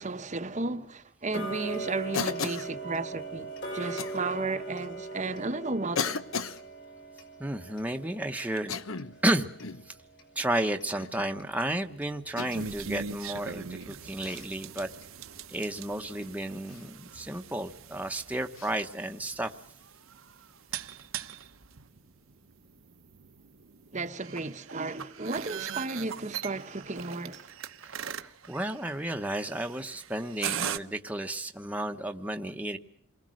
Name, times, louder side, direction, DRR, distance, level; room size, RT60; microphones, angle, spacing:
voice 1, 0.0-6.2 23.9-27.5, right 3 dB, 35° right, 1.0 m, -34 dB
Tick-tock, 1.3-12.2 12.6-12.7 13.2-13.3 13.8-13.9 14.4-14.5 15.0-15.1 15.6-15.7 16.2-16.3, right 3 dB, 55° left, 4.8 m, -41 dB
Cough, 2.1-2.7 4.0-4.2 5.1-5.2 6.0-6.6 8.6-9.2 9.6-9.9 11.0-11.3 12.4-12.7 14.2-14.5 16.7-16.9 18.6-18.7, left 5 dB, 75° left, 1.1 m, -34 dB
voice 2, 7.4-8.8 9.2-9.5 9.8-10.0 10.3-14.9 15.5-19.5 27.8-32.8, right 1 dB, 5° right, 1.0 m, -32 dB
sound 1, 12.4-30.8, right 8 dB, 75° right, 1.0 m, -41 dB
28.5 x 22.0 x 6.4 m
head